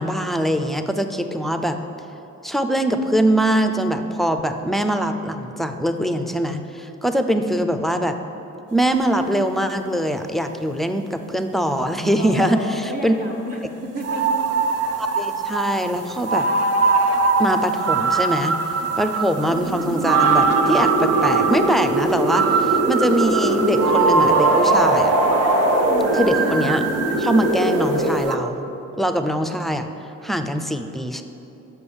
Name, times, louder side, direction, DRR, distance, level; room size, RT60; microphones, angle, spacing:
voice 1, 0.0-1.8 2.4-8.1 8.7-13.1 15.0-16.5 17.4-18.5 19.0-25.1 26.1-26.9 27.2-28.7 29.0-29.9 30.2-31.2, equal, ahead, 7 dB, 0.4 m, -22 dB
voice 2, 12.1-14.5 25.8-26.2, right 1 dB, 30° right, -3 dB, 0.9 m, -31 dB
sound 1, 14.0-28.0 28.2-28.4, right 4 dB, 55° right, 0.6 m, -22 dB
sound 2, 19.4-28.2, right 1 dB, 75° right, 1.2 m, -22 dB
6.3 x 5.3 x 7.0 m, 2.9 s
cardioid pair, 90°, 30 cm